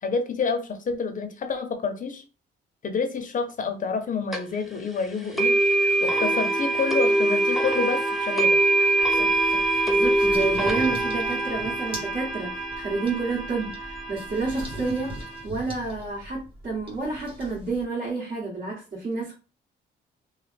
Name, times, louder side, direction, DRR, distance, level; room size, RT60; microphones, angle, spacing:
voice 1, 0.0-2.2 2.8-5.5 6.0-8.6, left 5 dB, 40° left, 0.7 m, -28 dB
sound 1, 4.3-4.4 5.4-15.4, right 2 dB, ahead, 0.7 m, -24 dB
sound 2, 9.0-17.8, right 1 dB, 25° right, 1.3 m, -41 dB
voice 2, 9.1-19.3, right 3 dB, 50° right, 1.8 m, -30 dB
3.1 x 2.2 x 3.3 m
cardioid pair, 90°, 20 cm